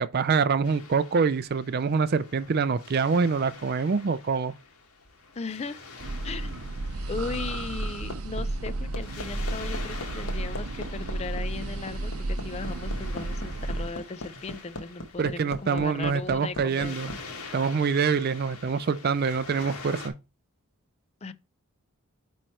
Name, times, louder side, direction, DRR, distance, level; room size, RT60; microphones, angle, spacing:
voice 1, 0.0-4.5 15.2-17.1 17.5-20.1, right 5 dB, 45° right, 0.4 m, -25 dB
Waves surf, 0.6-20.1, left 4 dB, 80° left, 1.5 m, -46 dB
voice 2, 5.4-5.8 6.2-6.7 7.1-17.2 21.2-21.3, left 4 dB, 30° left, 0.4 m, -37 dB
sound 1, 6.0-13.9, right 2 dB, 75° right, 0.7 m, -33 dB
Hammer, 7.5-17.2 18.5-18.6, left 1 dB, 60° left, 1.0 m, -39 dB
8.9 x 3.1 x 4.3 m
head